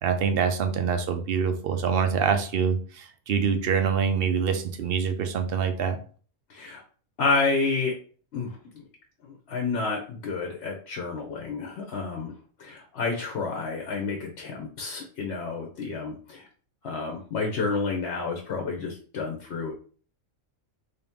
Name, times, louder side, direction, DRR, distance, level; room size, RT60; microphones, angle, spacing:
voice 1, 0.0-6.0, right 6 dB, 60° right, 7 dB, 0.7 m, -25 dB
voice 2, 6.5-6.8 7.2-7.9 8.3-8.6 9.5-12.3 12.6-16.5 16.8-19.7, left 4 dB, 60° left, 1 dB, 1.0 m, -29 dB
3.6 x 2.8 x 3.5 m, 0.42 s
omnidirectional pair, 1.3 m